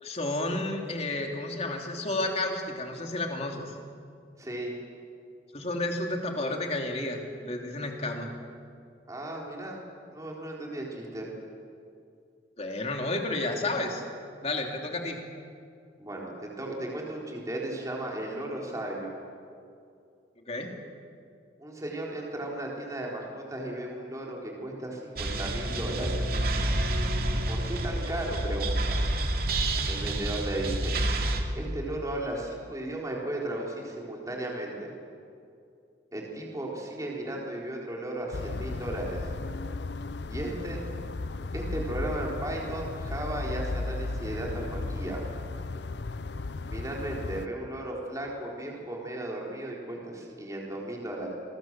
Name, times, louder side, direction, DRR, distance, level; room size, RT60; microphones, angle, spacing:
voice 1, 0.0-3.7 5.5-8.3 12.6-14.0 14.4-15.2 20.5-20.7, left 2 dB, 35° left, 2 dB, 3.1 m, -31 dB
voice 2, 4.4-4.7 9.1-9.8 10.1-11.3 16.0-19.1 21.6-26.3 27.5-28.8 29.9-30.9 31.5-34.9 36.1-39.2 40.3-40.8 41.5-45.2 46.7-51.3, right 1 dB, 20° right, -2 dB, 4.1 m, -35 dB
sound 1, 25.2-31.4, right 1 dB, 55° right, 2.7 m, -28 dB
sound 2, 38.3-47.5, left 3 dB, 70° left, 0.7 m, -35 dB
28.0 x 22.0 x 7.5 m, 2.4 s
head